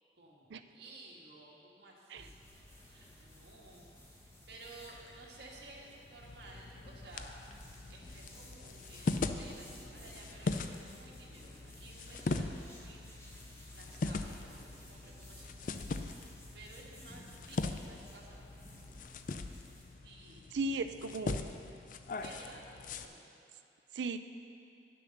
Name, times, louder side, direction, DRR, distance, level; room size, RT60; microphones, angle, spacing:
voice 1, 0.2-2.3 2.8-3.9 4.2-7.6 7.9-13.0 13.7-15.7 16.5-18.4 20.0-20.4 20.8-20.9 22.2-23.2, right 2 dB, 70° right, -3 dB, 1.7 m, -54 dB
sound 1, 2.2-20.0, left 1 dB, 15° left, 1.3 m, -55 dB
sound 2, 6.2-23.1, left 3 dB, 50° left, 0.4 m, -41 dB
voice 2, 20.5-21.5 23.9-24.2, right 3 dB, 85° right, 10 dB, 0.5 m, -36 dB
9.8 x 6.8 x 6.4 m, 2.6 s
head